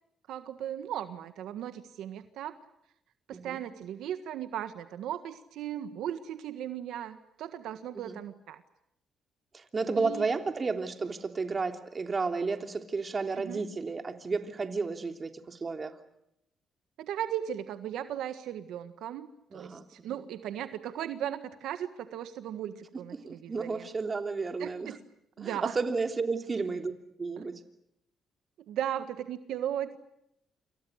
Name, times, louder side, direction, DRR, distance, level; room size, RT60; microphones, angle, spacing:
voice 1, 0.3-2.6 3.3-8.6 10.0-10.3 13.4-13.6 17.0-23.9 24.6-25.0 25.4-25.8 27.4-27.5 28.7-30.0, right 10 dB, 85° right, 9 dB, 1.6 m, -37 dB
voice 2, 9.5-16.0 19.5-20.1 23.1-24.9 25.4-26.9 27.2-27.5, right 4 dB, 35° right, 6 dB, 3.2 m, -32 dB
28.5 x 27.5 x 6.5 m, 0.80 s
cardioid pair, 90°, 0 cm